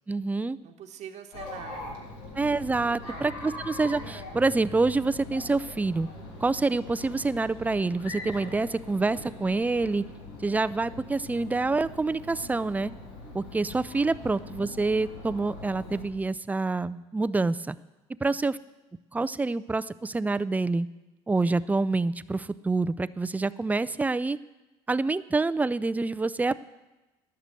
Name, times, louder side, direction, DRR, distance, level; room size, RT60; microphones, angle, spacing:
voice 1, 0.1-0.6 2.4-6.1 6.4-10.0 10.4-12.9 13.3-17.8 18.2-18.6 19.1-20.9 21.3-24.4 24.9-26.6, right 3 dB, 10° right, 15 dB, 0.4 m, -27 dB
voice 2, 0.6-2.0 2.3-2.5 2.8-3.6 14.2-14.3 18.2-18.5, right 9 dB, 55° right, 4 dB, 1.1 m, -45 dB
Chatter, 1.3-16.1, left 2 dB, 75° left, 3.0 m, -42 dB
12.0 x 6.8 x 7.6 m, 1.1 s
supercardioid pair, 85°, 14 cm